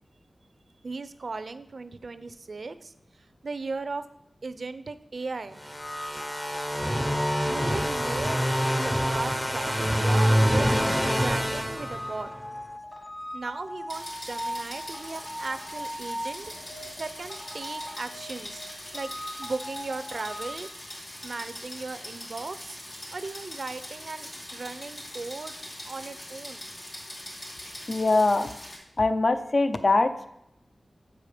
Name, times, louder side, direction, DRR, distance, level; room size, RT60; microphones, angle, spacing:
voice 1, 0.8-2.9 3.4-4.0 4.4-5.6 7.5-12.3 13.3-18.7 18.9-19.1 19.4-20.7 21.2-22.8 23.1-25.5 25.8-26.6, right 3 dB, 65° right, 11 dB, 0.5 m, -37 dB
sound 1, 5.6-12.5, equal, 10° left, 0.6 m, -26 dB
sound 2, 5.8-20.5, equal, 25° left, 1.3 m, -39 dB
sound 3, 13.9-28.8, left 1 dB, 80° left, 2.5 m, -42 dB
voice 2, 27.9-28.5 29.0-30.3, left 3 dB, 55° left, 9 dB, 0.5 m, -23 dB
7.5 x 4.8 x 5.0 m, 0.80 s
wide cardioid pair, 60°, 0 cm